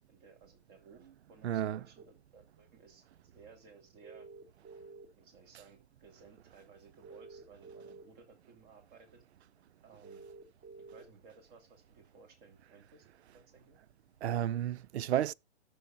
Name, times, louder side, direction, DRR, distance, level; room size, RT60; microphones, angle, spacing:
voice 1, 0.1-4.3 5.2-9.2 9.8-10.2 10.8-13.0 13.5-13.8, right 5 dB, 35° right, 3.1 m, -59 dB
voice 2, 1.4-1.8 14.2-15.3, right 11 dB, 65° right, 0.5 m, -32 dB
sound 1, 2.0-2.1 4.0-5.2 7.0-8.0 10.0-11.0, right 3 dB, 20° right, 1.8 m, -50 dB
18.5 x 6.3 x 2.4 m
hypercardioid pair, 145°, 35 cm